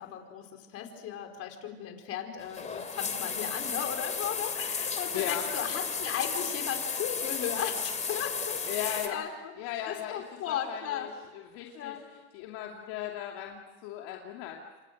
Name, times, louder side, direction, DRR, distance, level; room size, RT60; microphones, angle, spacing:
voice 1, 0.0-9.5 9.9-11.1 11.7-12.1, left 9 dB, 45° left, 4 dB, 4.8 m, -36 dB
sound 1, 2.4-9.1, left 5 dB, 20° left, 3.2 m, -34 dB
voice 2, 8.7-9.2 9.6-11.1 11.3-12.0 12.3-14.6, left 11 dB, 65° left, 0 dB, 2.8 m, -37 dB
29.0 x 26.5 x 6.5 m, 1.3 s
supercardioid pair, 115°, 33 cm